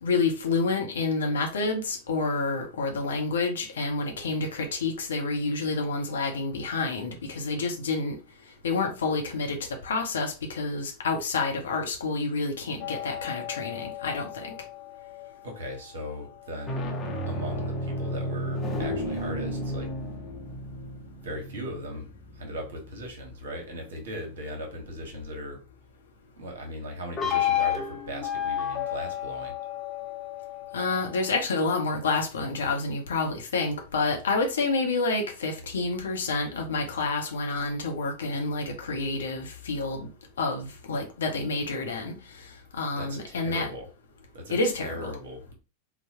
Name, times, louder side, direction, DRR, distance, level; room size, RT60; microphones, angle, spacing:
voice 1, 0.0-8.2 8.6-14.5 30.7-40.1 40.4-42.5 42.7-43.7 44.5-45.2, left 3 dB, 65° left, 0.8 m, -28 dB
sound 1, 12.8-15.4 16.5-23.3 27.2-31.4, left 5 dB, 20° left, 0.9 m, -32 dB
voice 2, 15.4-16.9 17.3-19.9 21.2-25.6 26.4-29.6 43.0-43.9 44.3-45.5, equal, 60° right, 1.1 m, -38 dB
3.9 x 2.2 x 2.8 m
figure-of-eight pair, 90°, 0 cm